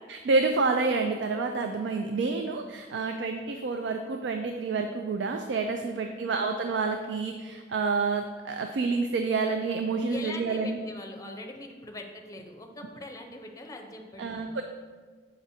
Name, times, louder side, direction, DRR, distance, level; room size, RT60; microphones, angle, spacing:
voice 1, 0.1-10.8 14.2-14.6, right 4 dB, 85° right, 5 dB, 0.4 m, -28 dB
voice 2, 6.1-6.5 10.1-14.6, left 1 dB, 20° left, 2 dB, 0.6 m, -42 dB
7.1 x 5.1 x 2.7 m, 1.5 s
head